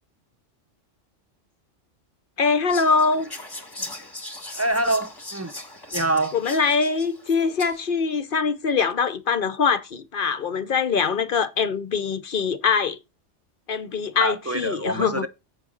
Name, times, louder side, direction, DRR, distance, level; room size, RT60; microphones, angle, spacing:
voice 1, 2.4-3.3 6.3-13.0 13.7-15.3, left 5 dB, 50° left, 0.9 m, -23 dB
Whispering, 2.7-8.0, left 2 dB, 20° left, 1.9 m, -38 dB
voice 2, 4.6-5.5 5.9-6.4 14.2-15.3, right 2 dB, 20° right, 0.4 m, -25 dB
7.7 x 7.6 x 3.9 m
omnidirectional pair, 1.2 m